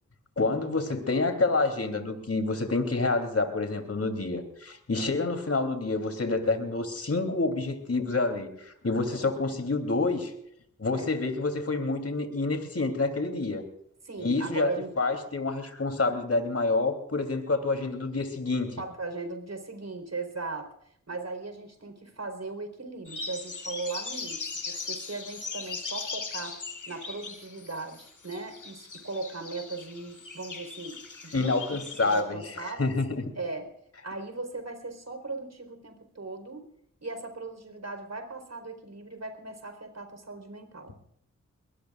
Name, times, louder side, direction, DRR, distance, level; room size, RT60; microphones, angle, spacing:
voice 1, 0.4-10.3 10.8-13.6 14.2-14.7 15.0-18.8 31.3-33.3, left 3 dB, 45° left, 6 dB, 3.3 m, -28 dB
voice 2, 14.0-14.9 18.8-20.7 21.1-26.6 26.9-31.8 32.1-32.9 33.3-33.7 34.0-36.7 37.0-40.9, right 3 dB, 50° right, 7 dB, 4.2 m, -38 dB
sound 1, 23.1-32.2, left 4 dB, 60° left, 3.3 m, -39 dB
22.5 x 18.5 x 2.5 m, 0.70 s
cardioid pair, 40°, 33 cm